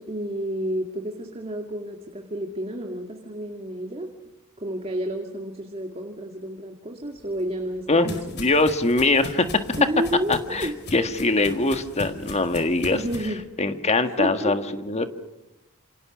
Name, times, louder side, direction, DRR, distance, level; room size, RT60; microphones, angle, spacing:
voice 1, 0.0-4.1 4.6-8.4 9.7-10.8 12.9-13.4 14.1-14.5, right 1 dB, 30° right, 3 dB, 2.2 m, -30 dB
sound 1, 7.2-13.3, left 2 dB, 50° left, 4.8 m, -40 dB
voice 2, 7.9-9.5 10.3-13.0 13.6-15.1, left 2 dB, 30° left, 8 dB, 1.7 m, -22 dB
28.0 x 27.5 x 6.3 m, 0.93 s
head